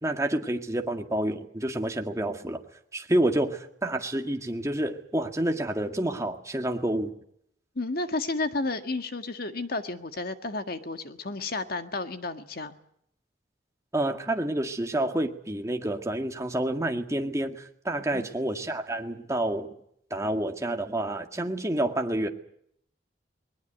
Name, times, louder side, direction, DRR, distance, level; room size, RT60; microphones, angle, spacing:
voice 1, 0.0-2.6 2.9-7.1 13.9-19.7 20.1-22.3, right 1 dB, 20° right, 4 dB, 2.0 m, -28 dB
voice 2, 7.8-12.7 18.1-18.3, left 2 dB, 60° left, 8 dB, 1.8 m, -32 dB
21.0 x 19.5 x 9.3 m, 0.70 s
head